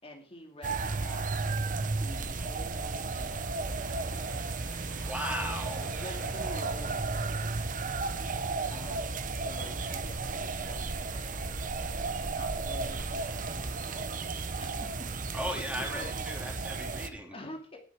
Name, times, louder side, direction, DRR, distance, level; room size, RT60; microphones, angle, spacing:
voice 1, 0.0-1.4 1.9-5.2 5.7-16.3 17.3-17.8, left 1 dB, 35° left, 2 dB, 2.5 m, -49 dB
sound 1, 0.6-17.1, right 3 dB, 50° right, 1.2 m, -34 dB
sound 2, 2.8-15.3, right 1 dB, 75° right, 7.4 m, -50 dB
voice 2, 5.0-5.9 15.3-17.4, equal, 5° right, 1 dB, 3.5 m, -36 dB
18.5 x 8.0 x 4.8 m, 0.39 s
head